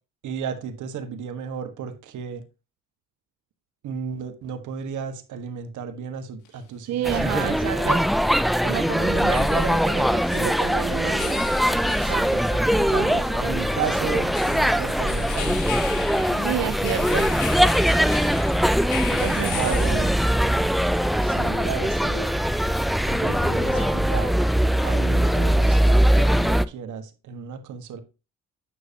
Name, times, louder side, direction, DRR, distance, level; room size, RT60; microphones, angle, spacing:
voice 1, 0.2-2.4 3.8-7.9 12.0-12.4 12.7-15.7 19.6-20.0 21.2-22.2 23.0-24.4 24.8-28.0, right 7 dB, 75° right, 1.5 m, -34 dB
sound 1, 6.5-6.6 9.1-20.7, left 9 dB, 85° left, 1.5 m, -38 dB
voice 2, 6.9-8.1 8.6-11.5 12.1-13.2 16.4-17.4 19.1-20.1, right 12 dB, 60° right, 0.5 m, -30 dB
sound 2, 7.0-26.6, equal, ahead, 0.4 m, -21 dB
sound 3, 10.6-26.2, left 1 dB, 35° left, 5.2 m, -46 dB
9.3 x 6.6 x 2.8 m
cardioid pair, 90°, 30 cm